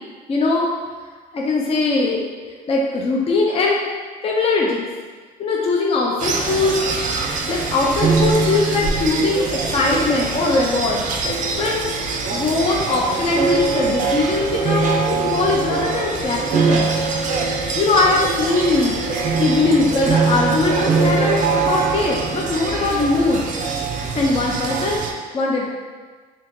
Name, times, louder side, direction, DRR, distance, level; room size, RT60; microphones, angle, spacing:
voice 1, 0.3-0.7 1.3-2.3 2.7-3.8 4.2-4.9 5.4-6.8 7.5-11.1 11.4-11.8 12.3-16.4 16.7-16.9 17.7-19.0 19.4-23.4 24.1-25.0 25.3-25.7, left 3 dB, 35° left, -2 dB, 0.5 m, -20 dB
sound 1, 6.2-25.1, right 4 dB, 50° right, 0.4 m, -22 dB
2.8 x 2.8 x 3.5 m, 1.5 s
cardioid pair, 110°, 17 cm